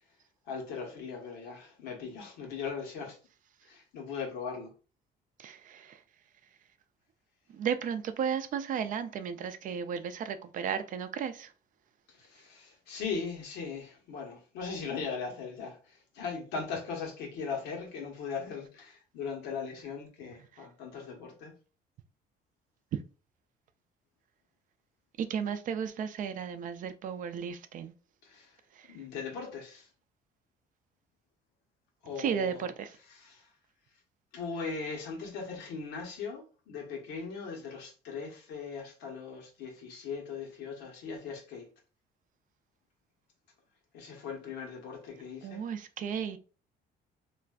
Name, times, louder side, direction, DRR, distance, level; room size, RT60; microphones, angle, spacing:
voice 1, 0.5-3.2 3.6-4.7 12.1-21.5 28.2-28.6 28.9-29.9 32.0-32.7 33.1-33.5 34.3-41.7 43.9-45.6, left 5 dB, 90° left, 1.0 m, -39 dB
voice 2, 5.4-6.0 7.5-11.5 25.2-27.9 28.8-28.9 32.2-32.9 45.4-46.4, right 7 dB, 50° right, 0.4 m, -34 dB
3.2 x 2.5 x 2.3 m
cardioid pair, 110°, 17 cm